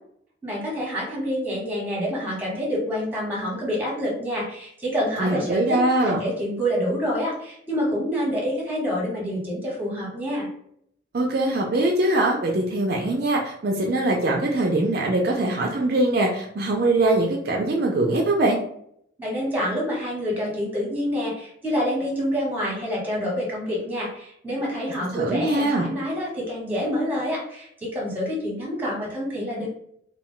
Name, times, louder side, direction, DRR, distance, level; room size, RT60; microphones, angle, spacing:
voice 1, 0.4-10.5 19.2-29.7, equal, 10° right, -4 dB, 1.0 m, -27 dB
voice 2, 5.2-6.2 11.1-18.6 25.1-25.9, right 2 dB, 50° right, 0 dB, 0.4 m, -22 dB
2.3 x 2.2 x 3.7 m, 0.69 s
head